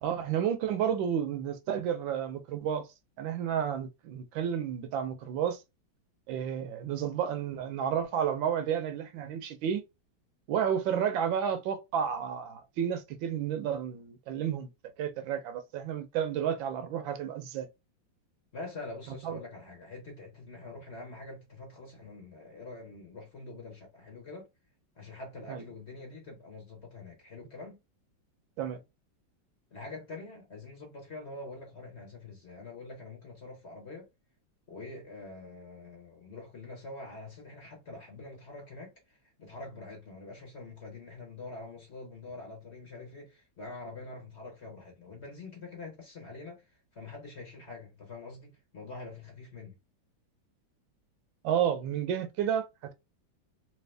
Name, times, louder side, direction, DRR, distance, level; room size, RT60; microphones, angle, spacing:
voice 1, 0.0-2.9 3.2-5.6 6.3-9.8 10.5-14.7 15.0-17.7 19.2-19.4 25.5-25.6 28.6-28.8 51.4-52.9, right 8 dB, 80° right, 1.3 m, -31 dB
voice 2, 18.5-24.5 24.9-27.8 29.7-34.1 34.7-49.8, left 3 dB, 40° left, 1.1 m, -45 dB
3.4 x 2.9 x 3.2 m
omnidirectional pair, 2.1 m